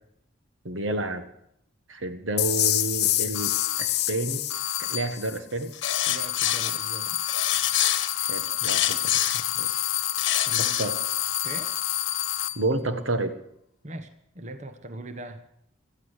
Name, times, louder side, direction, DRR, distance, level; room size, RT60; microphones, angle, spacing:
voice 1, 0.6-1.2 1.9-4.5 4.8-5.7 8.2-9.0 9.3-9.9 10.6-11.0 12.5-13.3, right 2 dB, 80° right, 8 dB, 1.6 m, -30 dB
sound 1, 2.4-5.4, left 15 dB, 55° left, 0.8 m, -26 dB
sound 2, 3.3-4.1 4.5-5.3 5.8-12.7, left 13 dB, 90° left, 0.9 m, -29 dB
sound 3, 5.7-6.7 7.3-9.5 10.0-10.9, left 12 dB, 70° left, 1.1 m, -26 dB
voice 2, 6.1-7.2 10.4-10.8 11.4-11.7 13.8-15.4, right 1 dB, 35° right, 8 dB, 1.1 m, -40 dB
17.5 x 12.5 x 6.5 m, 0.74 s
head